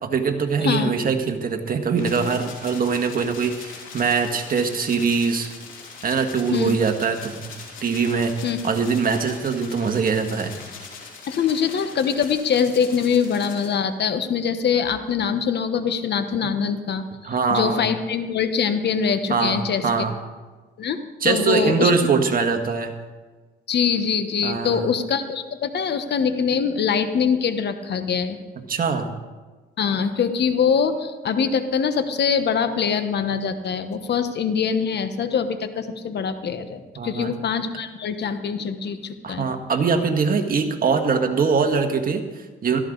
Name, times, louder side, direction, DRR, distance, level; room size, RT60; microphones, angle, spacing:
voice 1, 0.0-5.5 6.0-7.5 7.8-10.6 17.2-17.8 19.3-20.1 21.2-23.0 24.4-24.8 28.7-29.1 37.0-37.3 39.2-42.8, right 5 dB, 45° right, 5 dB, 1.7 m, -22 dB
voice 2, 0.6-0.9 6.5-6.8 8.4-8.6 11.3-19.9 20.8-21.0 21.2-21.9 23.7-28.4 29.8-39.5, left 6 dB, 60° left, 9 dB, 1.2 m, -23 dB
sound 1, 2.0-13.7, left 5 dB, 90° left, 3.4 m, -41 dB
17.0 x 14.0 x 4.0 m, 1.3 s
cardioid pair, 90°, 20 cm